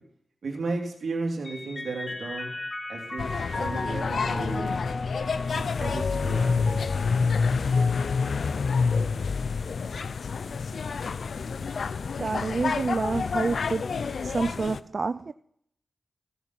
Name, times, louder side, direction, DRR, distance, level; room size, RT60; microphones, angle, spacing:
voice 1, 0.4-2.5 2.9-4.8 5.5-7.0, right 3 dB, 75° right, 2.9 m, -34 dB
Mallet percussion, 1.4-9.2, left 3 dB, 45° left, 1.5 m, -36 dB
sound 1, 3.2-14.8, left 5 dB, 75° left, 0.4 m, -28 dB
voice 2, 12.2-13.8 14.2-15.3, right 4 dB, 55° right, 0.4 m, -28 dB
16.0 x 7.0 x 6.0 m
cardioid pair, 55°, 0 cm